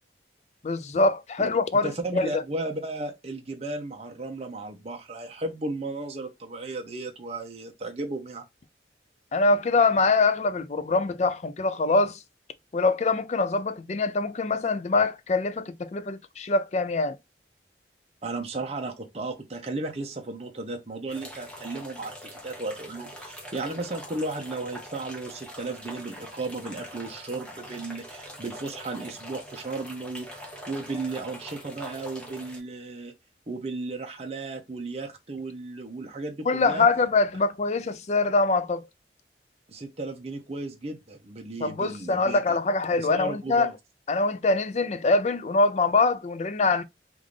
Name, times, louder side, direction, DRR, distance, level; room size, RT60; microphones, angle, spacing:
voice 1, 0.6-2.3 9.3-12.2 12.7-17.2 36.5-38.8 41.6-43.7 44.1-46.8, left 3 dB, 40° left, 0.4 m, -24 dB
voice 2, 1.8-8.4 18.2-33.1 33.5-36.9 39.7-42.6 43.0-43.7, right 2 dB, 35° right, 0.7 m, -35 dB
sound 1, 21.1-32.6, equal, 5° left, 0.9 m, -43 dB
3.6 x 2.5 x 3.2 m
head